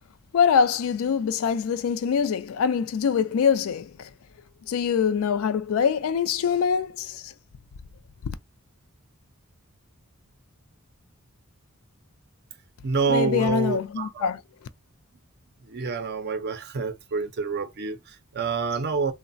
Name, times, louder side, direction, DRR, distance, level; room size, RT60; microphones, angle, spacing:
voice 1, 0.3-4.1 4.7-7.3 8.2-8.3 13.1-14.4, left 7 dB, 65° left, 0.3 m, -24 dB
voice 2, 12.8-14.3 15.6-19.1, right 4 dB, 50° right, 0.5 m, -27 dB
3.1 x 2.0 x 2.5 m
head